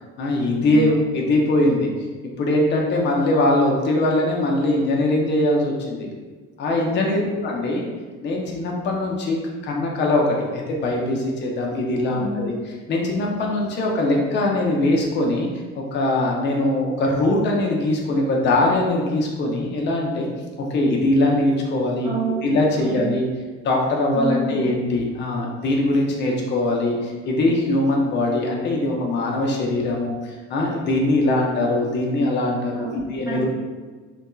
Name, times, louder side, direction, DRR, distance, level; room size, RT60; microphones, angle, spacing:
voice 1, 0.2-1.9 2.4-6.1 6.6-7.9 8.2-9.4 9.6-12.5 12.9-15.5 15.7-20.3 20.6-22.1 22.4-23.2 23.6-33.5, left 2 dB, 35° left, -1 dB, 0.6 m, -21 dB
voice 2, 6.9-7.2 12.1-12.6 22.0-23.0 24.1-24.6 32.7-33.0 33.3-33.5, right 3 dB, 10° right, -7 dB, 1.0 m, -29 dB
2.7 x 2.3 x 2.3 m, 1.4 s
hypercardioid pair, 75°, 34 cm